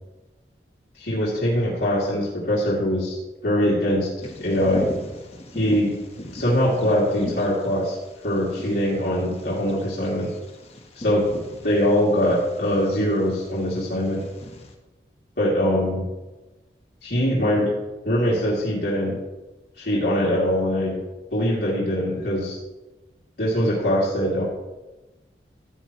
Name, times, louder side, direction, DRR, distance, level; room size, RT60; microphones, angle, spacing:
voice 1, 0.9-3.2 3.4-4.1 4.4-4.9 5.5-5.9 6.3-8.0 8.2-10.3 10.9-11.3 11.6-14.2 15.4-16.1 17.0-17.7 18.0-19.2 19.8-21.0 21.3-22.6 23.4-24.4, equal, 75° left, -7 dB, 2.6 m, -22 dB
Bird vocalization bird call bird song, 4.2-14.7, left 1 dB, 35° left, 1.3 m, -39 dB
15.5 x 8.8 x 3.1 m, 1.1 s
head